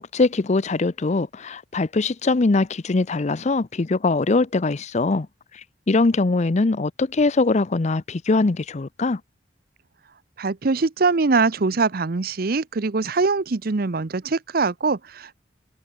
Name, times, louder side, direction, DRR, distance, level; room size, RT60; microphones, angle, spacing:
voice 1, 0.0-5.3 5.5-9.2, left 3 dB, 40° left, 0.6 m, -22 dB
voice 2, 10.4-15.4, right 4 dB, 55° right, 0.7 m, -23 dB
head